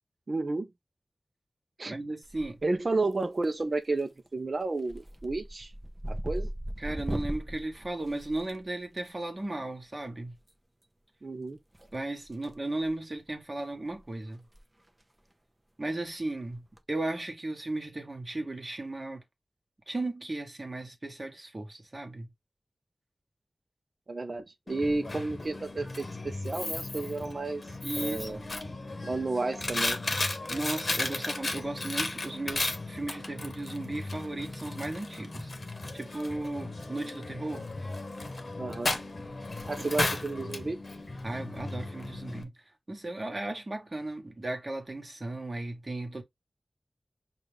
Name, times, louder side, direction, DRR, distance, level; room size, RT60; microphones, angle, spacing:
voice 1, 0.3-0.7 1.8-1.9 2.6-5.7 6.1-6.5 11.2-11.6 24.1-27.6 28.0-28.4 29.0-30.0 38.6-38.9 39.7-40.8, right 3 dB, 55° right, 0.6 m, -32 dB
voice 2, 1.9-2.6 6.8-10.4 11.9-14.4 15.8-19.2 19.9-22.3 27.8-28.5 30.5-35.5 35.9-37.7 39.8-40.0 41.2-42.5 42.9-46.2, right 2 dB, 35° right, 1.2 m, -36 dB
sound 1, 2.2-2.8 3.1-3.6 4.0-4.3 4.6-9.0 10.4-10.5 11.7-12.5 12.8-13.0 13.6-13.7 13.9-14.0 14.4-14.6 14.9-15.0 16.5-16.8, right 1 dB, 15° right, 0.7 m, -38 dB
Coin (dropping), 24.7-42.4, left 2 dB, 50° left, 0.9 m, -35 dB
5.5 x 2.5 x 3.2 m
wide cardioid pair, 90°, 0 cm